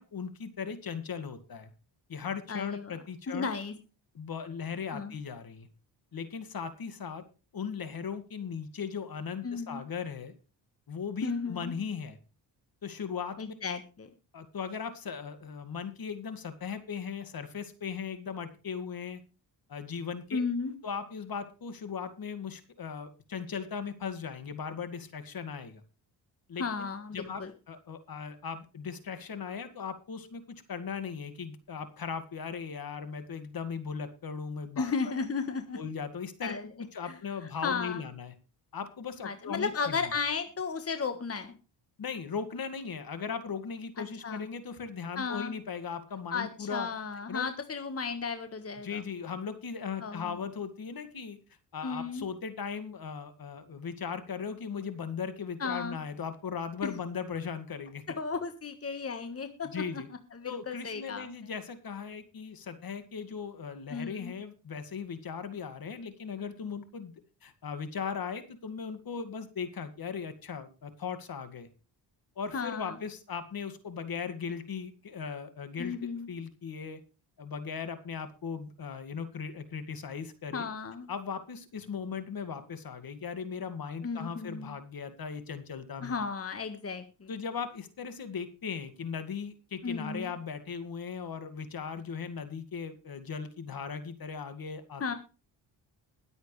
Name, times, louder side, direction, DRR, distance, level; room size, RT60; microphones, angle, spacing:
voice 1, 0.0-1.7 2.1-3.5 4.1-5.7 6.1-7.2 7.5-10.3 10.9-12.2 12.8-13.5 14.3-19.2 19.7-20.4 20.8-25.8 26.5-26.9 27.1-35.1 35.7-36.6 36.9-38.3 38.7-40.0 42.0-46.9 47.3-47.5 48.8-51.4 51.7-58.2 59.6-60.1 60.5-67.1 67.4-71.7 72.4-76.0 76.3-77.0 77.4-80.7 81.1-86.1 87.3-95.1, left 6 dB, 50° left, 10 dB, 2.2 m, -38 dB
voice 2, 2.5-2.9 3.3-3.7 4.9-5.1 9.4-9.8 11.2-11.7 13.4-14.1 20.3-20.7 26.6-27.5 34.8-35.8 36.4-36.6 37.0-37.1 37.6-38.0 39.2-41.5 44.0-44.5 45.1-45.5 46.3-49.0 50.0-50.3 51.8-52.3 55.6-56.0 56.8-57.0 58.2-59.8 60.3-61.3 63.9-64.3 72.5-73.0 75.8-76.3 80.5-81.1 84.0-84.7 86.0-87.3 89.8-90.3 95.0-95.1, left 5 dB, 30° left, 8 dB, 1.6 m, -34 dB
21.5 x 8.0 x 3.3 m, 0.33 s
cardioid pair, 80°, 44 cm